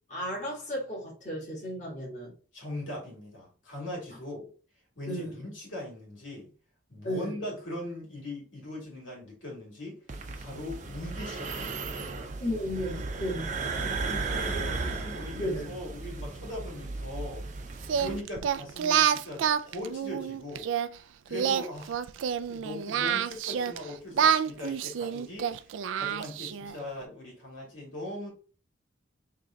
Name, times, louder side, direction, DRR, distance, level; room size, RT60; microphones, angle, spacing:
voice 1, 0.1-2.3 5.1-5.4 7.0-7.4 12.4-13.5 14.9-15.0 15.3-15.7, equal, 40° left, 1.7 m, -34 dB
voice 2, 2.5-4.5 5.0-6.5 6.9-10.0 10.3-12.3 13.3-17.4 18.0-20.7 21.3-22.0 22.5-25.6 26.0-28.3, left 1 dB, 85° left, 2.4 m, -40 dB
sound 1, 10.1-18.2, right 3 dB, 40° right, 0.6 m, -35 dB
Singing, 17.8-20.9 21.3-23.8 24.1-26.7, right 8 dB, 85° right, 0.3 m, -28 dB
3.7 x 3.1 x 3.8 m
head